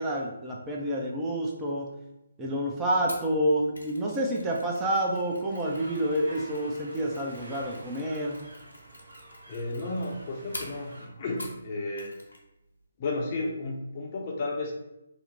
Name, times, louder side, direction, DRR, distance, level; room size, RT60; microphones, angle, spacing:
voice 1, 0.0-1.9 2.4-8.4, right 1 dB, 15° right, -2 dB, 0.5 m, -28 dB
Mechanisms, 3.1-11.7 12.0-12.4 12.7-12.8, left 1 dB, 80° left, 0.9 m, -46 dB
sound 1, 5.6-11.1, right 1 dB, 65° right, 0.9 m, -48 dB
voice 2, 9.5-12.1 13.0-14.7, left 2 dB, 35° left, -1 dB, 0.6 m, -33 dB
2.9 x 2.0 x 3.9 m, 0.87 s
figure-of-eight pair, 145°, 0 cm